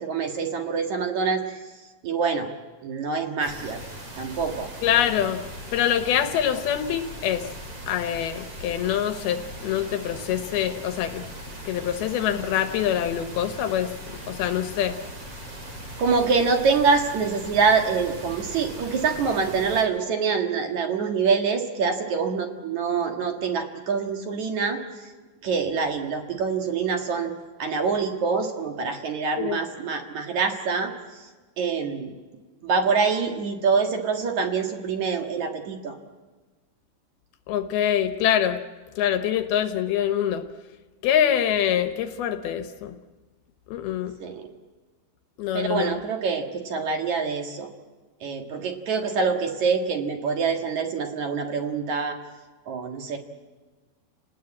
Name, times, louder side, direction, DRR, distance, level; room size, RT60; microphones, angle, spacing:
voice 1, 0.0-1.6 2.0-2.5 2.8-3.8 4.2-4.7 16.0-24.8 25.4-27.3 27.6-30.9 31.6-32.1 32.6-36.0 44.2-44.5 45.5-47.7 48.2-52.2 52.7-53.2, right 5 dB, 55° right, 4 dB, 2.6 m, -25 dB
sound 1, 3.4-19.8, equal, 35° right, 5.0 m, -39 dB
voice 2, 4.8-5.4 5.7-7.5 7.9-11.3 11.7-15.0 29.4-29.6 37.5-38.6 39.0-40.4 41.0-43.0 43.7-44.1 45.4-46.0, left 10 dB, 75° left, 9 dB, 2.7 m, -25 dB
30.0 x 19.0 x 8.7 m, 1.3 s
omnidirectional pair, 4.7 m